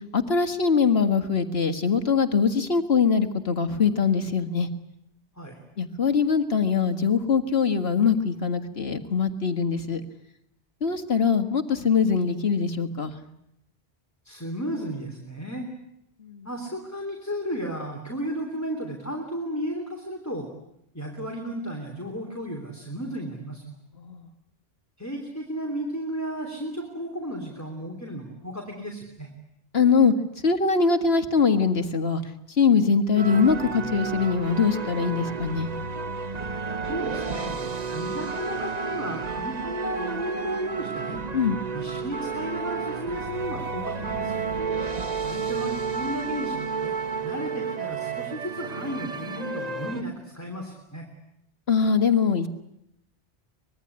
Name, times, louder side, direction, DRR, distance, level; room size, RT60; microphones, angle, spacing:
voice 1, 0.1-4.7 5.8-10.0 10.8-13.1 16.2-16.5 24.0-24.2 29.7-30.1 30.4-32.2 32.6-35.7 41.3-41.6 44.8-44.9 51.7-52.5, left 5 dB, 65° left, 8 dB, 2.0 m, -22 dB
voice 2, 14.3-15.7 16.4-20.5 20.9-23.7 25.0-29.3 36.8-41.2 41.7-44.5 45.2-47.0 47.2-51.1, equal, 15° left, 2 dB, 3.5 m, -34 dB
sound 1, 33.2-50.0, right 5 dB, 40° right, 1.3 m, -31 dB
25.0 x 21.5 x 10.0 m, 0.80 s
omnidirectional pair, 1.1 m